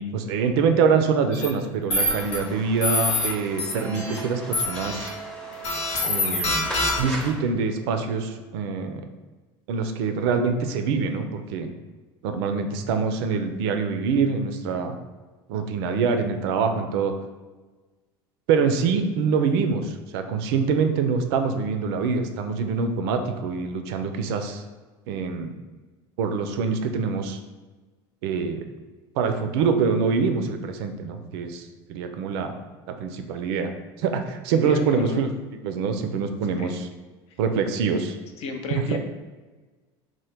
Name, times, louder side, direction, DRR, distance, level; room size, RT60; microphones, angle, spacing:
voice 1, 0.0-5.1 6.0-6.7 7.0-9.0 9.7-11.7 12.2-15.0 15.5-17.1 18.5-24.6 25.1-25.5 26.2-27.4 28.2-28.6 29.2-32.5 32.9-33.7 34.0-35.3 35.6-36.9 37.4-38.1 38.7-39.0, right 5 dB, 75° right, 7 dB, 0.4 m, -25 dB
sound 1, 1.3-1.5 1.9-2.4 2.8-3.3 3.6-4.2 4.5-5.1 5.6-7.2, left 2 dB, 85° left, 0.8 m, -25 dB
sound 2, 2.0-7.3, right 1 dB, 5° left, 0.7 m, -38 dB
voice 2, 34.6-35.2 36.6-36.8 38.4-39.0, left 3 dB, 55° left, 5 dB, 0.5 m, -32 dB
3.0 x 2.1 x 3.4 m, 1.3 s
supercardioid pair, 95°, 13 cm